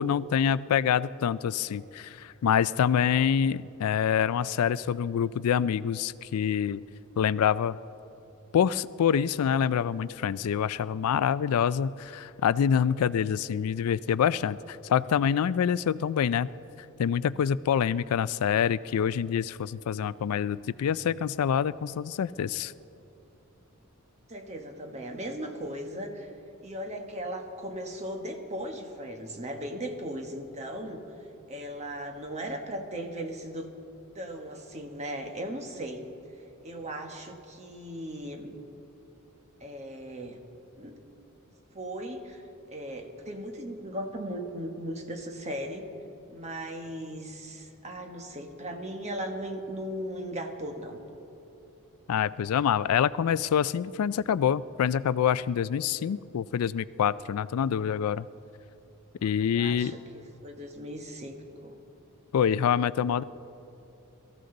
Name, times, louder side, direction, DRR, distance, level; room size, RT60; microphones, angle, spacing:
voice 1, 0.0-6.8 7.2-7.8 8.5-16.5 17.0-22.7 52.1-58.3 59.2-59.9 62.3-63.2, left 8 dB, 85° left, 18 dB, 0.3 m, -26 dB
voice 2, 24.3-26.3 26.6-31.0 31.5-33.7 34.1-36.0 36.6-38.5 39.6-40.4 40.7-41.0 41.7-42.4 42.7-45.9 46.3-51.0 59.4-61.8, right 1 dB, 30° right, 4 dB, 1.3 m, -37 dB
23.0 x 14.5 x 3.9 m, 3.0 s
head